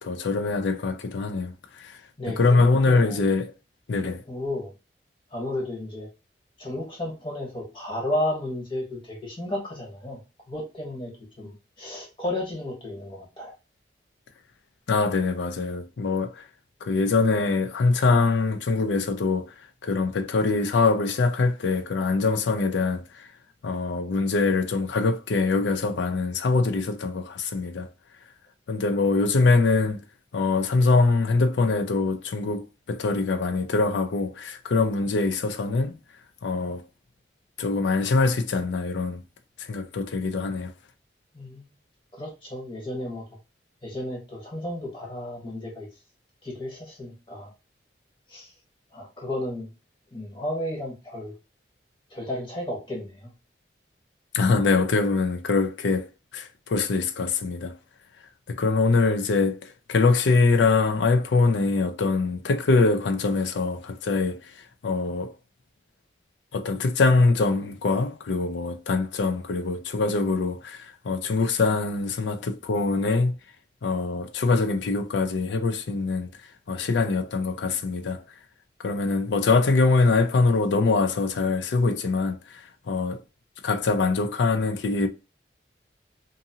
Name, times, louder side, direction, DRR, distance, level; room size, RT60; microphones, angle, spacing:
voice 1, 0.0-2.0 2.4-3.5 3.9-4.2 14.9-16.4 16.8-19.5 19.8-23.3 23.6-27.9 28.7-30.0 30.3-35.9 36.4-36.8 37.6-39.2 39.6-40.7 54.3-57.8 58.5-64.5 64.8-65.3 66.5-73.4 73.8-76.3 76.7-78.2 78.8-83.2 83.6-85.1, left 3 dB, 90° left, 0.4 m, -23 dB
voice 2, 2.2-3.2 4.3-4.7 5.3-6.1 6.6-10.2 10.5-11.1 11.4-13.5 41.3-41.7 42.1-43.2 43.8-45.9 46.4-47.5 48.3-48.5 48.9-49.7 50.1-51.3 52.1-53.3, left 1 dB, 25° left, 1.1 m, -33 dB
2.7 x 2.6 x 2.7 m
head